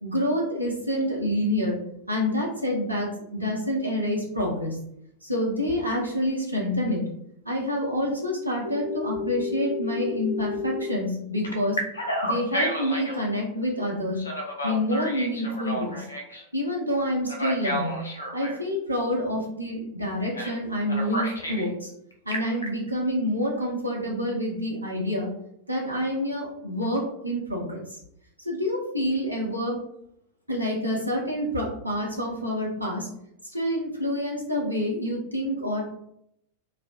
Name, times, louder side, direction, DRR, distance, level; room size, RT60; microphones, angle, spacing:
voice 1, 0.0-1.8 2.1-4.8 5.2-7.0 7.4-11.8 12.2-14.2 14.6-16.1 16.5-18.0 18.3-21.9 22.3-25.3 25.7-27.8 28.4-29.8 30.5-33.1 33.5-35.8, left 1 dB, 85° right, -2 dB, 0.5 m, -27 dB
Telephone, 8.6-10.9 11.4-13.2 14.2-16.4 17.3-18.6 20.3-20.6 20.9-21.7 22.1-22.7, left 1 dB, 75° left, 0.5 m, -31 dB
2.4 x 2.1 x 2.5 m, 0.74 s
figure-of-eight pair, 90°, 0 cm